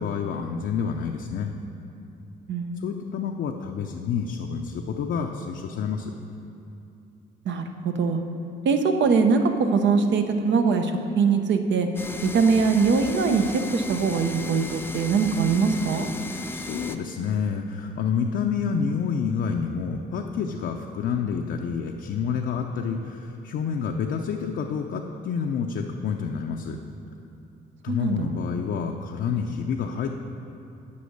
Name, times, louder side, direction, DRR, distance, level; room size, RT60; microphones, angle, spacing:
voice 1, 0.0-1.5 2.8-6.1 16.4-26.8 27.8-30.1, left 6 dB, 65° left, 1 dB, 0.6 m, -28 dB
voice 2, 2.5-3.1 7.5-8.2 8.6-11.9 12.2-16.1 27.9-28.3, right 5 dB, 65° right, 6 dB, 0.8 m, -22 dB
sound 1, 12.0-17.0, left 2 dB, 10° left, 0.6 m, -36 dB
8.5 x 5.4 x 7.9 m, 2.7 s
cardioid pair, 90°, 20 cm